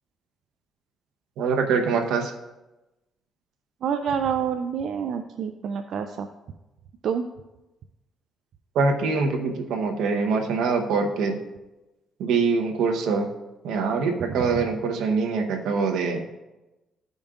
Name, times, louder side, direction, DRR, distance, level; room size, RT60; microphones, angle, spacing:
voice 1, 1.4-2.3 8.7-11.4 12.2-13.3 13.6-16.2, right 4 dB, 85° right, 3 dB, 1.0 m, -24 dB
voice 2, 3.8-6.3 7.0-7.2 14.4-14.6, right 7 dB, 65° right, 6 dB, 0.4 m, -27 dB
13.5 x 5.2 x 2.5 m, 1.0 s
cardioid pair, 95°, 0 cm